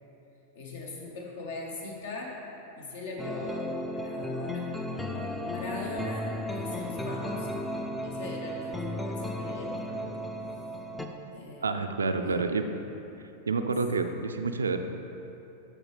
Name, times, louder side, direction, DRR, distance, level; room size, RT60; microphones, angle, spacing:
voice 1, 0.5-2.4 2.8-7.6 8.0-10.1 11.3-11.9 12.2-12.4, left 2 dB, 60° left, -1 dB, 1.3 m, -40 dB
sound 1, 3.2-11.1, left 1 dB, 5° left, 0.5 m, -35 dB
voice 2, 11.6-12.6 13.5-14.8, right 4 dB, 75° right, 7 dB, 0.4 m, -28 dB
12.5 x 4.6 x 3.3 m, 2.9 s
figure-of-eight pair, 90°, 0 cm